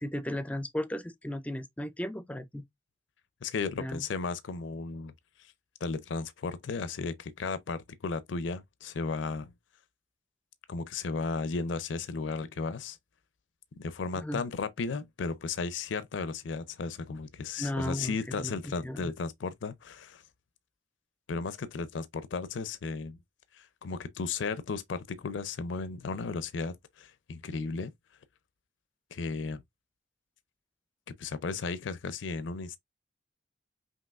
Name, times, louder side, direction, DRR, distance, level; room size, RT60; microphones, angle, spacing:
voice 1, 0.0-2.7 3.8-4.0 14.1-14.4 17.6-18.5 18.8-19.1, left 1 dB, 5° left, 0.4 m, -35 dB
voice 2, 3.4-5.1 5.4-5.5 5.8-9.5 10.7-13.0 13.8-20.2 21.3-23.2 23.5-27.9 29.1-29.6 31.2-32.8, left 4 dB, 70° left, 0.5 m, -35 dB
5.3 x 2.9 x 2.3 m
head